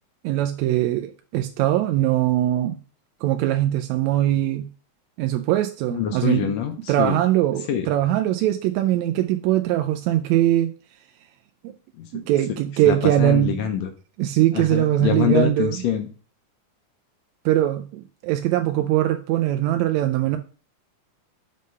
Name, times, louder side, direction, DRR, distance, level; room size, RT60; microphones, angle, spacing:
voice 1, 0.2-2.8 3.2-4.7 5.2-6.5 6.9-10.7 12.1-13.6 14.2-15.7 17.4-20.4, right 13 dB, 80° right, 6 dB, 1.7 m, -21 dB
voice 2, 5.9-7.2 7.7-7.9 12.0-12.1 12.9-13.9 14.5-16.1, left 9 dB, 70° left, 5 dB, 1.8 m, -25 dB
6.5 x 3.5 x 5.4 m, 0.38 s
omnidirectional pair, 3.5 m